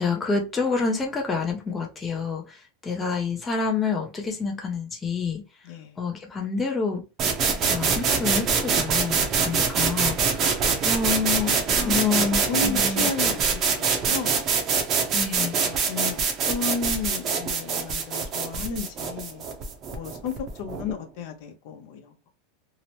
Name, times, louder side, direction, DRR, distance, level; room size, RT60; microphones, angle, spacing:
voice 1, 0.0-5.4 6.0-7.0 7.6-10.4 10.8-11.6 11.9-13.1 15.1-15.6, left 4 dB, 15° left, 0.5 m, -28 dB
voice 2, 5.6-6.0 11.5-14.4 15.3-19.4 19.9-22.3, left 5 dB, 55° left, 0.6 m, -34 dB
sound 1, 7.2-20.9, right 5 dB, 30° right, 0.6 m, -24 dB
2.8 x 2.0 x 2.9 m
supercardioid pair, 145°, 0 cm